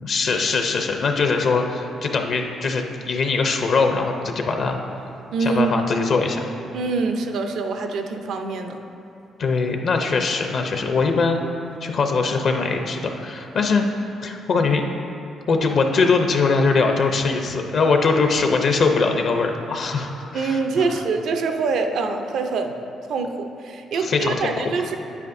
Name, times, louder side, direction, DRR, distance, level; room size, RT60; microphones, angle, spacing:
voice 1, 0.0-4.8 5.4-6.5 9.4-11.4 11.8-13.9 14.2-14.8 15.5-21.0 23.9-24.7, left 4 dB, 60° left, 4 dB, 0.6 m, -21 dB
voice 2, 5.3-5.8 6.7-8.8 20.3-22.7 23.1-25.0, right 4 dB, 70° right, 5 dB, 0.6 m, -24 dB
8.8 x 8.3 x 2.6 m, 2.7 s
cardioid pair, 90°, 0 cm